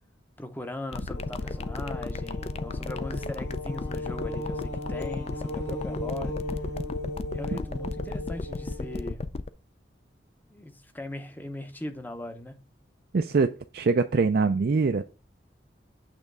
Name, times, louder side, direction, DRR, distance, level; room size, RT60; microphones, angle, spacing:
voice 1, 0.4-6.3 7.3-9.4 10.5-12.6, left 1 dB, 10° left, 0.7 m, -39 dB
sound 1, 0.9-9.5, left 3 dB, 35° left, 0.4 m, -33 dB
sound 2, 1.1-9.1, left 1 dB, 60° left, 2.2 m, -37 dB
voice 2, 13.1-15.0, right 4 dB, 55° right, 0.4 m, -23 dB
8.4 x 3.5 x 5.3 m
head